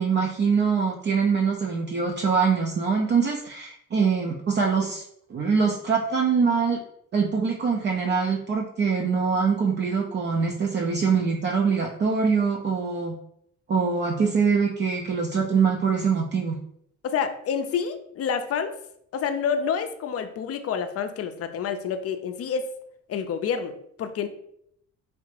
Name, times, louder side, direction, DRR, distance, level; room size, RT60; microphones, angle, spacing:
voice 1, 0.0-5.0 5.3-6.8 7.1-13.2 13.7-16.6, right 5 dB, 40° right, 0 dB, 0.4 m, -23 dB
voice 2, 17.0-18.7 19.1-22.7 23.1-24.3, left 7 dB, 50° left, 8 dB, 0.5 m, -28 dB
3.2 x 2.4 x 3.2 m, 0.71 s
cardioid pair, 90°, 30 cm